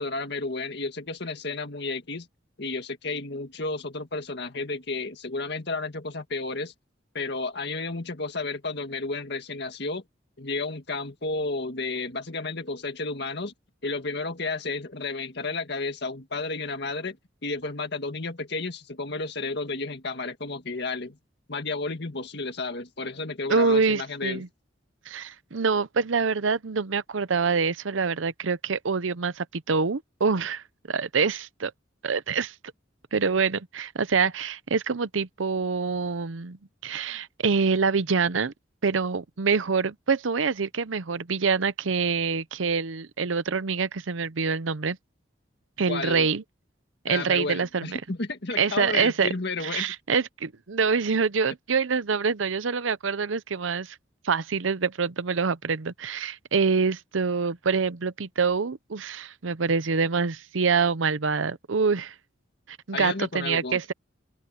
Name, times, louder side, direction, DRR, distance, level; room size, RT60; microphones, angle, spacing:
voice 1, 0.0-2.3 2.6-6.7 7.1-10.0 10.4-13.5 13.8-17.2 17.4-21.2 21.5-24.4 45.9-46.3 47.1-49.9 62.9-63.8, left 3 dB, 60° left, 1.9 m, -32 dB
voice 2, 23.5-24.5 25.1-31.7 32.0-32.5 33.1-36.6 36.8-38.5 38.8-45.0 45.8-46.4 47.0-48.0 48.6-49.3 49.6-54.0 54.2-62.1 62.7-63.9, right 5 dB, 90° right, 0.7 m, -26 dB
open air
head